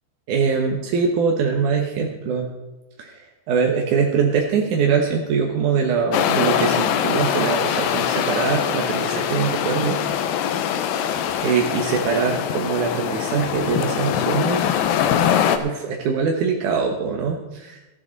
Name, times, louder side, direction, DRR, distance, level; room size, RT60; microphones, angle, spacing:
voice 1, 0.3-2.5 3.0-10.0 11.4-14.7 15.6-17.9, right 5 dB, 70° right, 1 dB, 1.9 m, -23 dB
sound 1, 6.1-15.6, left 9 dB, 80° left, 2.2 m, -23 dB
14.5 x 13.0 x 4.0 m, 1.0 s
omnidirectional pair, 5.0 m